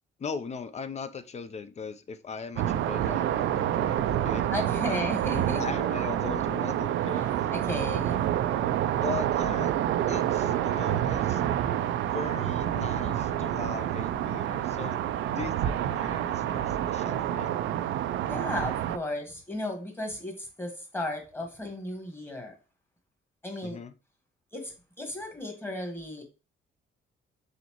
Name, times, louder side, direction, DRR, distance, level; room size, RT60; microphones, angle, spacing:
voice 1, 0.2-4.5 4.9-5.0 5.5-7.5 9.0-9.7 10.1-11.5 12.0-15.0 15.3-17.5 23.6-23.9, left 6 dB, 35° left, 12 dB, 0.5 m, -39 dB
sound 1, 2.6-19.0, right 11 dB, 75° right, 0.4 m, -28 dB
voice 2, 4.5-5.6 7.1-8.2 18.3-22.5 23.4-23.8 24.5-26.2, left 1 dB, 10° left, 2 dB, 1.4 m, -35 dB
4.2 x 3.8 x 2.9 m, 0.32 s
cardioid pair, 90°, 20 cm